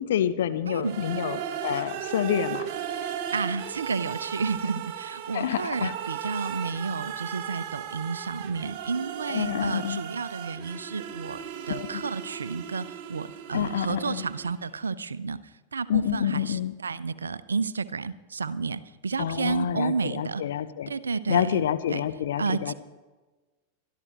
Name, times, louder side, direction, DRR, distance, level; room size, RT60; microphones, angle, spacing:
voice 1, 0.0-2.7 5.3-5.9 9.3-10.0 11.7-11.9 13.5-14.2 15.9-16.7 19.2-20.9 21.3-22.7, left 10 dB, 60° left, 11 dB, 0.7 m, -28 dB
voice 2, 0.7-1.0 2.9-11.4 11.7-20.4 20.9-21.6 21.9-22.0 22.4-22.7, right 4 dB, 75° right, 17 dB, 0.6 m, -31 dB
sound 1, 0.8-14.7, right 9 dB, 50° right, 0.9 m, -36 dB
22.5 x 13.0 x 3.0 m, 1.2 s
figure-of-eight pair, 90°, 0 cm